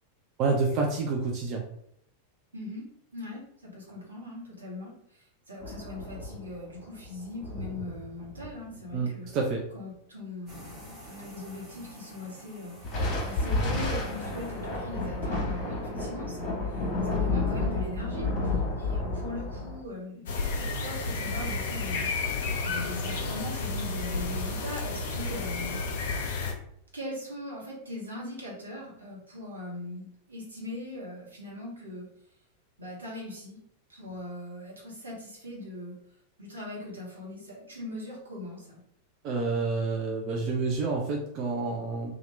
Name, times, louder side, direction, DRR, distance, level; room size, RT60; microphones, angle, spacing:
voice 1, 0.4-1.6 8.9-9.6 39.2-42.1, right 4 dB, 40° right, 1 dB, 0.4 m, -28 dB
voice 2, 2.5-2.8 3.1-9.3 9.7-22.1 22.6-26.3 26.9-32.1 32.8-33.6 33.9-36.0 36.4-38.8, left 1 dB, 75° right, -4 dB, 1.1 m, -40 dB
sound 1, 5.6-8.9 12.8-19.8, left 2 dB, 30° left, 1.2 m, -31 dB
sound 2, 10.5-15.3, equal, 20° right, 1.3 m, -49 dB
sound 3, 20.3-26.5, left 3 dB, 55° left, 0.5 m, -31 dB
2.8 x 2.4 x 3.1 m, 0.73 s
figure-of-eight pair, 90°, 0 cm